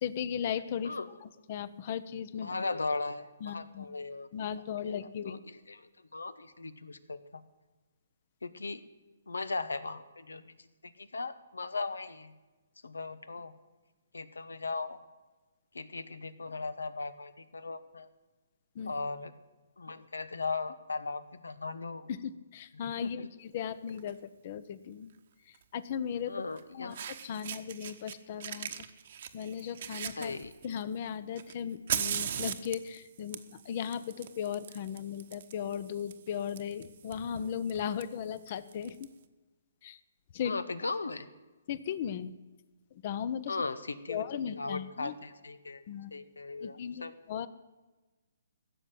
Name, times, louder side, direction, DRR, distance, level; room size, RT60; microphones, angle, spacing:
voice 1, 0.0-2.6 3.4-3.9 4.3-5.4 18.7-18.9 22.1-25.1 25.7-26.4 26.7-28.7 29.3-30.4 30.6-39.1 39.8-40.0 40.3-40.5 41.7-42.3 42.9-43.6 44.1-45.1 45.9-46.1 46.6-47.5, left 8 dB, 45° left, 16 dB, 0.8 m, -37 dB
voice 2, 2.4-4.3 4.8-5.0 5.2-7.4 8.4-8.8 9.3-10.6 10.8-12.3 12.8-13.5 14.1-15.0 15.7-18.1 18.9-19.3 19.8-22.1 23.0-23.3 26.3-27.1 30.2-30.5 40.4-41.3 43.5-45.8 46.1-47.1, left 3 dB, 90° left, 14 dB, 1.1 m, -38 dB
Fire, 23.9-24.1 25.5-25.6 26.6-26.7 26.9-28.1 28.4-30.8 31.4-39.0, right 9 dB, 55° right, 1.1 m, -39 dB
15.5 x 7.0 x 9.2 m, 1.2 s
hypercardioid pair, 145°, 0 cm